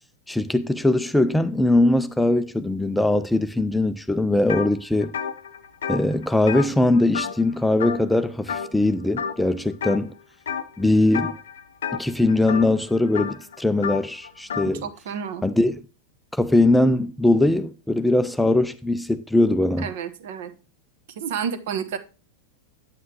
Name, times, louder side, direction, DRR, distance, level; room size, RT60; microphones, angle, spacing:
voice 1, 0.3-5.1 5.9-10.1 10.8-11.4 11.9-14.9 15.4-15.8 16.3-19.9, left 2 dB, 5° left, 0.4 m, -21 dB
sound 1, 4.5-4.7 5.0-7.5 7.8-8.2 8.5-8.8 9.2-10.0 10.5-10.8 11.1-14.7, left 7 dB, 65° left, 0.7 m, -31 dB
voice 2, 14.8-15.4 19.8-20.5 21.2-22.0, right 7 dB, 55° right, 1.1 m, -30 dB
9.2 x 8.9 x 3.0 m
figure-of-eight pair, 90°, 0 cm